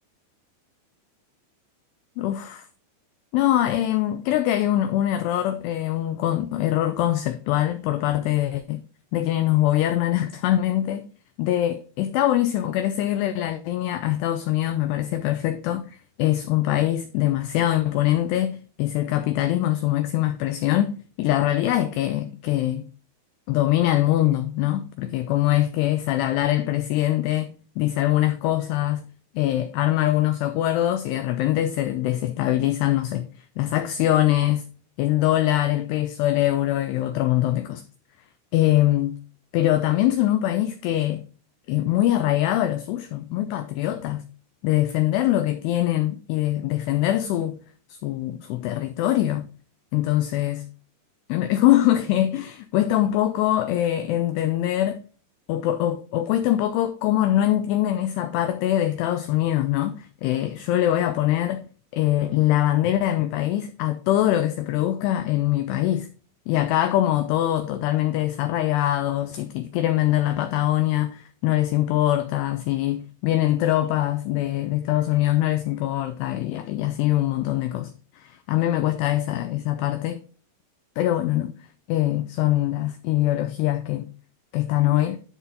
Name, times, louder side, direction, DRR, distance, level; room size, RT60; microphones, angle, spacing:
voice 1, 2.2-2.7 3.3-8.8 9.1-11.1 11.4-22.9 23.5-29.0 29.4-33.3 33.6-34.7 35.0-37.8 38.5-39.2 39.5-41.2 41.7-44.3 44.6-47.6 47.9-49.5 49.9-50.6 51.3-55.0 55.5-61.7 61.9-66.1 66.5-80.2 81.0-81.5 81.9-84.1 84.5-85.2, left 13 dB, 85° left, 2.4 m, -23 dB
11.0 x 4.0 x 3.9 m
omnidirectional pair, 5.2 m